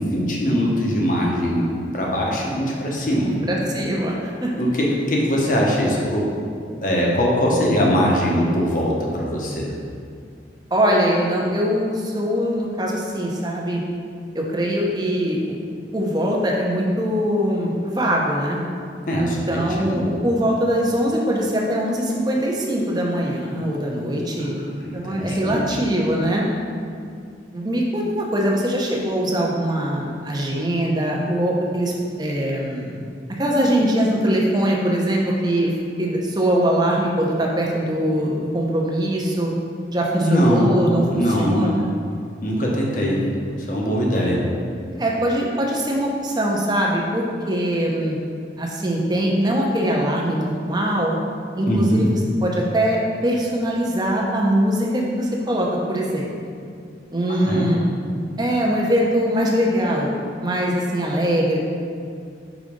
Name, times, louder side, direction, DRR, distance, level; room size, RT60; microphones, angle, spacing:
voice 1, 0.0-1.7 1.9-3.3 4.6-6.4 6.8-9.7 19.1-19.6 20.0-20.1 24.4-24.5 25.1-25.6 40.2-40.7 41.1-41.7 42.4-43.2 43.7-44.4 51.7-52.0 57.3-57.7, equal, 45° left, -3 dB, 1.0 m, -21 dB
voice 2, 3.4-4.5 10.7-13.8 14.3-15.5 15.9-18.6 19.2-26.5 27.5-31.9 32.2-33.0 33.4-35.7 36.0-39.6 39.9-41.9 45.0-48.2 48.6-51.1 51.6-53.0 53.2-56.3 57.1-57.9 58.4-60.1 60.4-61.6, equal, 25° right, -2 dB, 0.7 m, -22 dB
5.1 x 4.0 x 5.2 m, 2.3 s
head